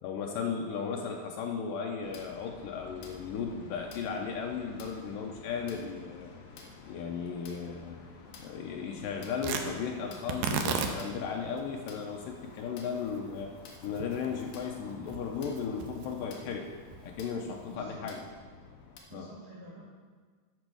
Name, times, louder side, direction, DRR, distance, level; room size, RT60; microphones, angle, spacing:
voice 1, 0.0-6.3 6.9-8.0 8.4-13.5 13.8-16.7 17.0-18.2 19.1-19.3, left 6 dB, 90° left, 1 dB, 1.9 m, -36 dB
sound 1, 2.0-19.0, left 4 dB, 70° left, 2.7 m, -50 dB
Tearing, 9.4-17.7, right 6 dB, 80° right, 2.0 m, -38 dB
voice 2, 17.7-18.3 19.1-19.8, right 1 dB, 55° right, -5 dB, 3.3 m, -48 dB
9.3 x 5.4 x 6.6 m, 1.5 s
omnidirectional pair, 4.7 m